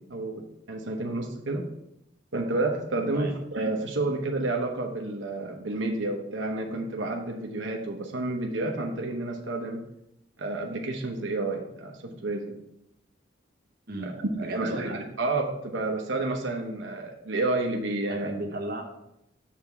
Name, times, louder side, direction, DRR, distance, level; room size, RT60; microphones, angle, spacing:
voice 1, 0.1-0.4 0.7-1.6 2.3-9.8 10.4-12.5 14.4-18.3, right 2 dB, 85° right, 2 dB, 0.9 m, -30 dB
voice 2, 13.9-15.0 18.1-18.8, right 1 dB, 55° right, 1 dB, 1.0 m, -35 dB
7.4 x 3.5 x 5.9 m, 0.81 s
head